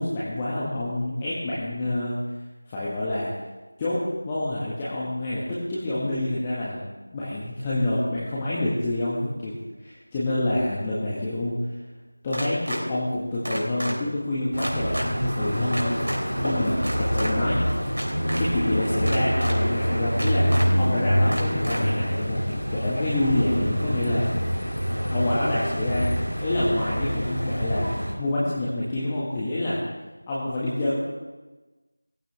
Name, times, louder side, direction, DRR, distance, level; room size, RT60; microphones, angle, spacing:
voice 1, 0.0-2.2 2.7-3.3 3.8-6.8 7.1-9.5 9.8-11.6 12.2-17.7 18.4-24.3 25.1-26.1 26.4-29.8 30.3-31.0, left 1 dB, 10° left, -9 dB, 1.5 m, -27 dB
sound 1, 12.3-12.8 13.4-13.9 14.6-15.1 15.7-16.2 16.8-17.3 17.9-18.4 19.1-19.5 20.2-20.7 21.3-21.8, equal, 60° right, 3.4 m, -31 dB
sound 2, 14.5-28.1, equal, 75° left, 5.5 m, -26 dB
17.5 x 14.5 x 3.3 m, 1.2 s
figure-of-eight pair, 170°, 0 cm